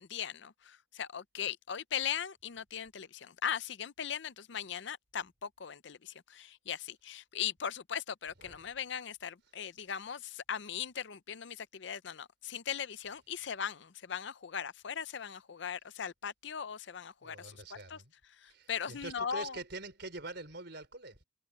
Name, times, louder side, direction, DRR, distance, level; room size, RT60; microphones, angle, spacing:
voice 1, 0.0-18.0 18.4-19.6, left 8 dB, 60° left, 0.5 m, -39 dB
voice 2, 17.2-18.1 18.4-21.2, right 2 dB, 55° right, 5.1 m, -45 dB
head